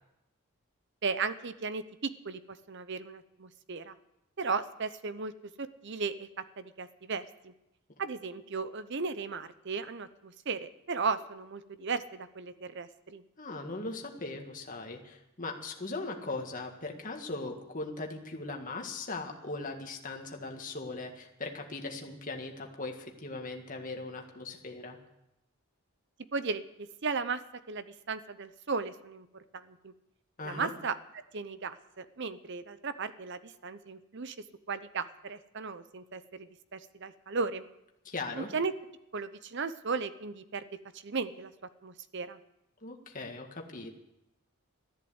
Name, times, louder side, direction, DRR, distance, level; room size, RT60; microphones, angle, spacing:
voice 1, 1.0-3.9 4.4-5.3 5.6-7.5 8.0-13.2 26.3-27.4 27.7-29.9 30.4-31.0 31.3-34.4 34.7-37.7 38.3-38.7 39.1-40.6 40.9-41.5 41.8-42.4, right 4 dB, 55° right, 13 dB, 0.7 m, -36 dB
voice 2, 13.4-25.0 30.4-30.7 38.0-38.5 42.8-44.0, left 3 dB, 40° left, 2 dB, 1.9 m, -39 dB
14.0 x 11.0 x 8.0 m, 0.89 s
head